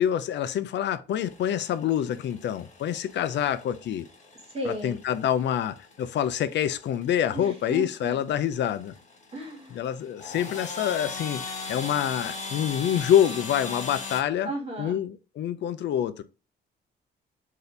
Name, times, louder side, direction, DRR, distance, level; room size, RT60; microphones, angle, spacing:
voice 1, 0.0-4.1 4.6-8.9 9.7-14.5 14.8-16.2, left 10 dB, 65° left, 0.5 m, -26 dB
sound 1, 1.2-14.2, left 3 dB, 35° left, 1.2 m, -40 dB
voice 2, 4.5-5.0 7.3-8.1 9.3-9.8 14.4-15.0, right 1 dB, 30° right, 1.7 m, -34 dB
4.0 x 2.8 x 3.2 m
cardioid pair, 90°, 20 cm